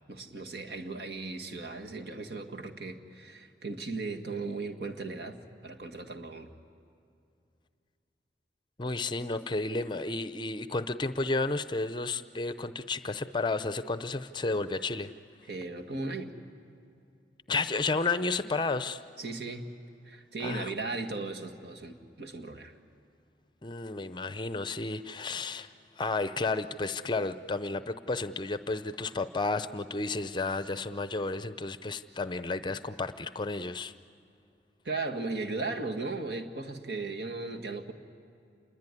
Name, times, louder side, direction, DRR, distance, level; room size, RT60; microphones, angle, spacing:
voice 1, 0.1-5.4 5.6-6.5 15.5-16.3 19.2-19.7 20.0-22.7 34.8-37.9, right 3 dB, 70° right, 3 dB, 1.9 m, -37 dB
voice 2, 8.8-15.1 17.5-19.0 20.4-20.7 23.6-25.7 26.0-33.9, left 3 dB, 25° left, 13 dB, 0.6 m, -32 dB
27.0 x 21.5 x 9.8 m, 2.4 s
head